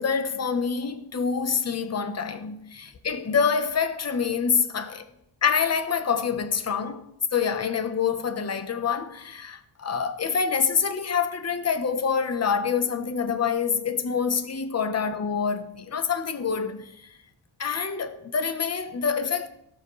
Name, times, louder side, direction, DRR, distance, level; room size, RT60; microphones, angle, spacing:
voice 1, 0.0-5.0 5.4-7.1 7.3-17.1 17.6-19.5, left 6 dB, 35° left, 1.0 m, -26 dB
17.0 x 7.8 x 3.2 m
wide cardioid pair, 110°, 47 cm